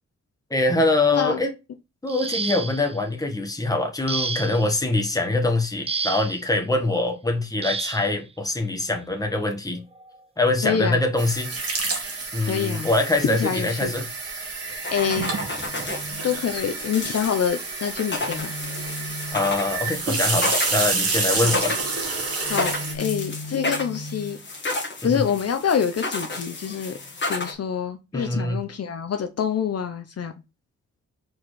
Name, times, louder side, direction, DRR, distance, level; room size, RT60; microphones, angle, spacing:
voice 1, 0.5-1.5 2.0-9.8 10.4-14.1 19.3-21.7 25.0-25.2 28.1-28.6, left 2 dB, 10° left, 1.3 m, -24 dB
voice 2, 1.1-1.4 10.6-11.0 12.4-12.9 13.2-13.9 14.4-14.6 14.9-15.3 16.2-18.6 21.3-21.6 22.5-24.4 25.0-27.0 27.3-30.3, left 7 dB, 55° left, 0.7 m, -26 dB
sound 1, 2.1-3.0 4.1-4.7 5.9-6.4 7.6-8.1 9.3-9.4 9.9-10.2, right 4 dB, 20° right, 0.4 m, -30 dB
sound 2, 11.2-22.9, right 3 dB, 55° right, 1.7 m, -29 dB
sound 3, 14.8-27.5, left 2 dB, 40° left, 1.4 m, -32 dB
4.7 x 4.3 x 4.7 m
wide cardioid pair, 115°, 29 cm